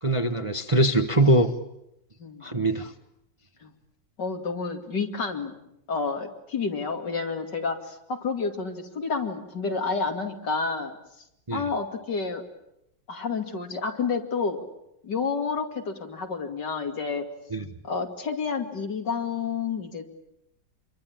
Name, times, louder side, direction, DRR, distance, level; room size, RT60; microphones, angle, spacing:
voice 1, 0.0-1.5 2.4-2.9 11.5-11.6 17.5-17.6, right 1 dB, 20° right, 7 dB, 1.0 m, -22 dB
voice 2, 4.2-5.6 5.9-11.0 11.5-12.4 13.1-14.6 15.0-17.3 17.8-20.0, left 4 dB, 70° left, 4 dB, 3.2 m, -29 dB
27.5 x 23.0 x 8.8 m, 0.82 s
omnidirectional pair, 1.9 m